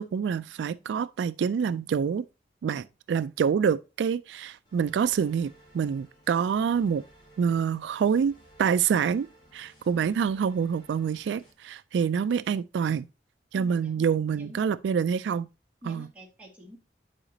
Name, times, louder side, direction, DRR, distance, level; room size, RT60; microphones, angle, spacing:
voice 1, 0.0-2.2 2.6-7.0 7.4-8.3 8.6-9.3 9.5-13.1 13.5-15.5 15.9-16.1, right 7 dB, 80° right, 0.3 m, -26 dB
sound 1, 4.6-11.5, right 1 dB, 25° left, 3.0 m, -57 dB
voice 2, 13.5-14.0 14.4-14.6 15.8-16.8, equal, 10° right, 2.1 m, -48 dB
10.0 x 4.9 x 2.7 m
head